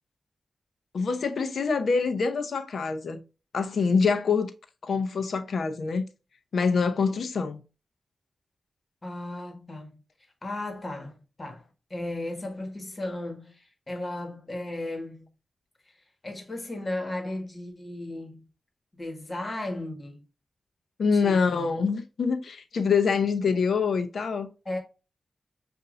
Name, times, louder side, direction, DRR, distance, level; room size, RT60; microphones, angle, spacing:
voice 1, 0.9-3.2 3.5-4.5 4.8-6.0 6.5-7.6 21.0-24.5, left 5 dB, 80° left, 0.7 m, -25 dB
voice 2, 9.0-10.0 10.4-15.3 16.2-18.5 18.9-20.2 21.1-21.7 24.6-24.8, left 1 dB, 35° left, 1.6 m, -35 dB
6.8 x 2.6 x 2.5 m
wide cardioid pair, 85°, 0 cm